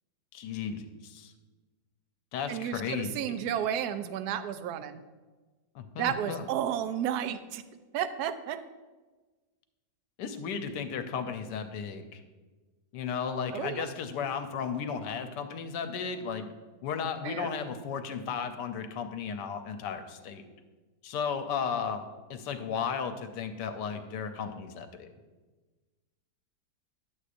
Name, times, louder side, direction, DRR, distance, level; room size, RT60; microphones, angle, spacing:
voice 1, 0.3-1.3 2.3-3.4 5.7-6.4 10.2-12.2 12.9-16.5 16.8-20.4 21.0-22.0 22.3-25.1, left 6 dB, 85° left, 8 dB, 1.3 m, -34 dB
voice 2, 2.5-5.0 6.0-7.6 7.9-8.6 13.5-13.9 17.2-17.5, right 10 dB, 75° right, 11 dB, 1.0 m, -32 dB
10.5 x 8.2 x 2.5 m, 1.3 s
omnidirectional pair, 1.8 m